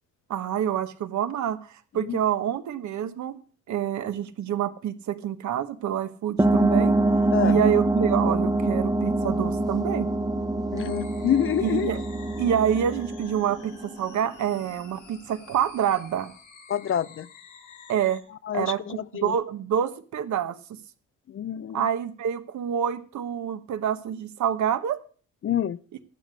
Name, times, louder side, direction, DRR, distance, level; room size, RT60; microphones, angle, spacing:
voice 1, 0.3-3.4 3.7-7.0 7.4-10.1 11.6-12.0 12.4-16.3 17.9-18.2 18.5-20.6 21.7-25.0, right 9 dB, 70° right, 1.2 m, -27 dB
sound 1, 6.4-14.5, right 2 dB, 10° right, 0.9 m, -25 dB
voice 2, 10.7-11.9 16.7-17.3 18.5-19.3 21.3-21.8 25.4-25.8, left 10 dB, 45° left, 0.5 m, -27 dB
sound 2, 10.8-18.2, left 6 dB, 90° left, 6.5 m, -50 dB
12.0 x 8.2 x 6.3 m
cardioid pair, 90°, 30 cm